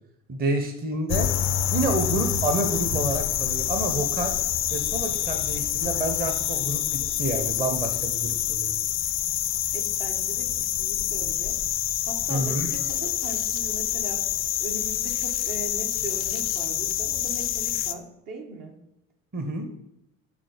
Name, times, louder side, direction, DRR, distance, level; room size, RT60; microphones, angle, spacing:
voice 1, 0.3-1.3 1.7-4.3 4.7-8.7 12.3-12.7 19.3-19.7, right 2 dB, 20° right, 5 dB, 0.9 m, -28 dB
sound 1, 1.1-17.9, left 11 dB, 35° left, 0.4 m, -27 dB
voice 2, 9.7-11.6 12.1-14.2 14.6-18.8, right 3 dB, 55° right, 2 dB, 1.3 m, -39 dB
6.2 x 3.8 x 5.0 m, 0.88 s
figure-of-eight pair, 55°, 41 cm